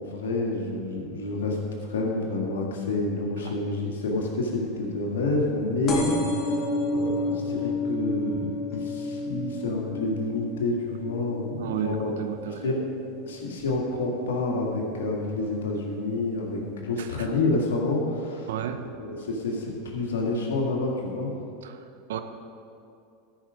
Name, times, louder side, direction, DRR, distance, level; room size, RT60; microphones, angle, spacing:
voice 1, 0.0-1.6 1.9-6.6 6.9-12.1 12.6-12.8 13.2-18.5 19.0-21.3, left 2 dB, 85° left, -1 dB, 1.9 m, -28 dB
sound 1, 5.9-13.1 13.6-14.0 14.9-15.0 15.2-15.3 15.5-15.6, left 1 dB, 35° left, 1.8 m, -30 dB
voice 2, 11.6-12.7 17.0-17.1 18.5-18.9 21.6-21.8 22.1-22.2, right 9 dB, 75° right, 8 dB, 0.7 m, -32 dB
13.0 x 5.8 x 5.1 m, 2.5 s
hypercardioid pair, 95°, 0 cm